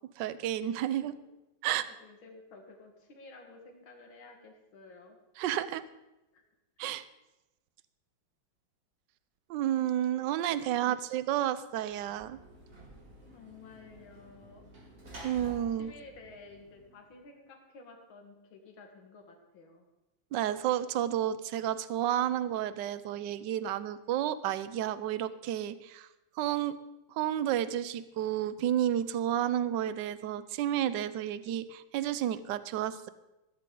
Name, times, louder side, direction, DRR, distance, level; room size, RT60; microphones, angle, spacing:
voice 1, 0.2-1.1 1.6-1.9 5.4-5.8 6.8-7.0 9.5-12.4 15.2-15.9 20.3-26.1 26.4-26.8 27.1-33.1, right 11 dB, 70° right, 14 dB, 1.3 m, -31 dB
voice 2, 1.9-5.2 6.3-6.4 13.3-14.7 15.7-19.8, left 3 dB, 80° left, 3 dB, 2.5 m, -53 dB
Sliding door / Slam, 11.8-17.2, right 1 dB, 45° right, 3.0 m, -51 dB
16.5 x 13.0 x 3.8 m, 0.97 s
omnidirectional pair, 2.2 m